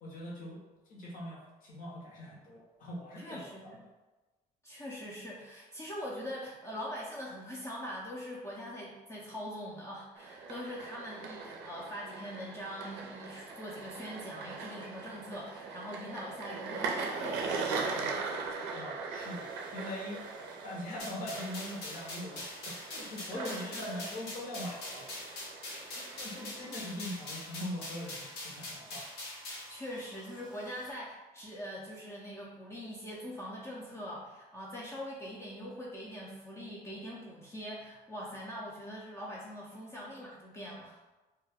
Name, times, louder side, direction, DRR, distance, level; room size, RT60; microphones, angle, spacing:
voice 1, 0.0-0.6 0.9-3.9 18.7-20.2 20.6-25.1 25.3-25.4 25.9-29.1, left 1 dB, 55° left, -4 dB, 0.9 m, -42 dB
voice 2, 3.2-3.8 4.6-18.3 23.2-24.1 29.7-41.0, equal, 15° left, -5 dB, 0.5 m, -43 dB
sound 1, 10.2-27.1, right 4 dB, 90° right, 0.4 m, -40 dB
sound 2, 19.2-30.9, right 2 dB, 25° right, 0.7 m, -57 dB
sound 3, 21.0-29.7, left 2 dB, 80° left, 1.0 m, -43 dB
2.2 x 2.2 x 3.3 m, 1.1 s
cardioid pair, 110°, 17 cm